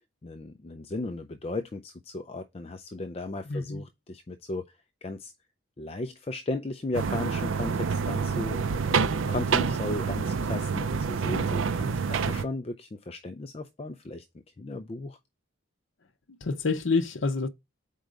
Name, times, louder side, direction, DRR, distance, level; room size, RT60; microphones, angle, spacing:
voice 1, 0.2-5.3 5.8-14.2 14.6-15.2, left 2 dB, 30° left, 0.4 m, -36 dB
voice 2, 3.4-3.8 16.4-17.5, left 4 dB, 70° left, 0.7 m, -27 dB
sound 1, 6.9-12.4, right 5 dB, 75° right, 0.5 m, -27 dB
5.2 x 4.6 x 5.0 m
head